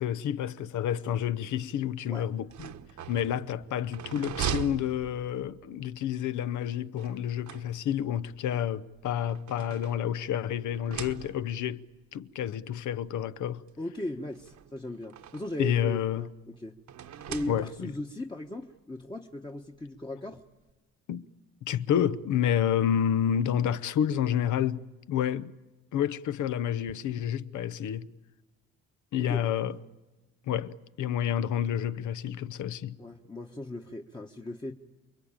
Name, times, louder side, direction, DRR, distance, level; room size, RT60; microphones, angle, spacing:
voice 1, 0.0-2.7 3.1-11.8 12.1-13.6 15.6-16.3 17.5-17.9 21.1-21.2 21.6-25.6 25.9-28.1 29.1-29.8 30.5-33.0, left 10 dB, 75° left, 0.9 m, -29 dB
sound 1, 2.4-5.7 7.0-8.1 9.0-10.4 10.7-11.7 12.6-12.7 13.0-13.1 14.3-15.7 16.9-18.0, right 8 dB, 65° right, 1.2 m, -40 dB
voice 2, 13.8-16.3 16.6-16.8 17.3-20.4 29.2-29.5 33.0-34.7, left 1 dB, 15° left, 1.2 m, -37 dB
29.0 x 22.0 x 8.9 m
cardioid pair, 90°, 30 cm